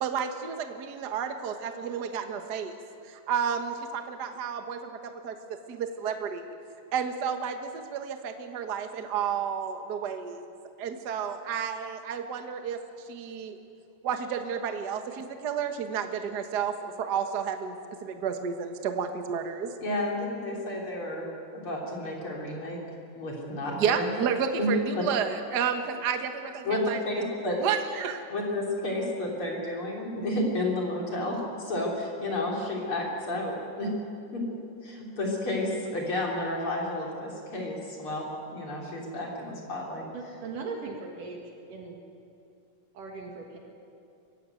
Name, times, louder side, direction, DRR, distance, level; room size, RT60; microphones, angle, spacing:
voice 1, 0.0-2.7 3.1-6.4 6.9-13.6 14.0-19.7 23.7-27.2 27.6-28.2, right 7 dB, 55° right, 6 dB, 1.1 m, -31 dB
voice 2, 19.8-22.8 23.2-24.1 24.6-25.0 26.6-27.6 28.3-33.9 34.3-34.4 34.8-38.2 38.5-40.0, left 1 dB, 40° left, -2 dB, 4.1 m, -31 dB
voice 3, 40.1-41.4 41.7-42.0 43.0-43.6, right 4 dB, 70° right, 1 dB, 3.4 m, -38 dB
23.5 x 16.5 x 9.3 m, 2.5 s
omnidirectional pair, 3.9 m